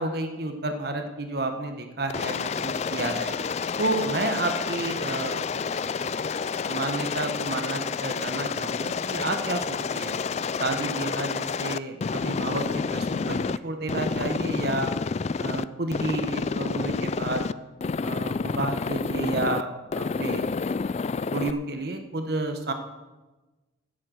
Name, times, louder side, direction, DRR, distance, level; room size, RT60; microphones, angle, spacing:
voice 1, 0.0-3.3 3.8-5.7 6.0-6.1 6.5-10.2 10.6-14.9 15.4-17.4 18.0-20.5 21.3-22.7, right 2 dB, 55° right, 6 dB, 1.1 m, -31 dB
Aircraft, 2.1-13.6 13.9-15.6 15.9-17.5 17.8-19.6 19.9-21.5, left 5 dB, 35° left, 0.3 m, -29 dB
16.5 x 7.6 x 6.4 m, 1.2 s
head